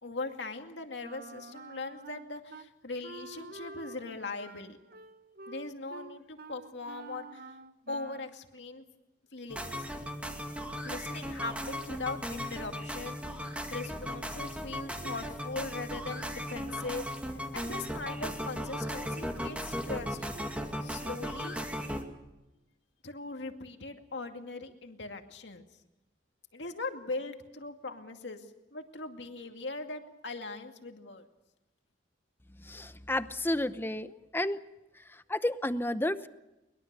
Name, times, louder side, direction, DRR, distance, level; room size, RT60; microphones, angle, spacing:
voice 1, 0.0-4.8 5.5-7.4 7.9-8.8 9.3-9.9 10.4-13.2 13.7-17.1 17.3-20.2 20.8-21.9 23.0-25.6 26.5-28.4 28.7-31.3, left 3 dB, 70° left, 5 dB, 2.3 m, -40 dB
Wind instrument woodwind instrument, 1.0-2.7 3.0-8.4, right 3 dB, 55° right, 0.9 m, -48 dB
sound 1, 9.5-22.0, equal, 5° right, 2.2 m, -37 dB
voice 2, 32.6-34.6 35.3-36.3, left 1 dB, 10° left, 12 dB, 0.8 m, -31 dB
23.0 x 21.5 x 6.9 m, 0.99 s
head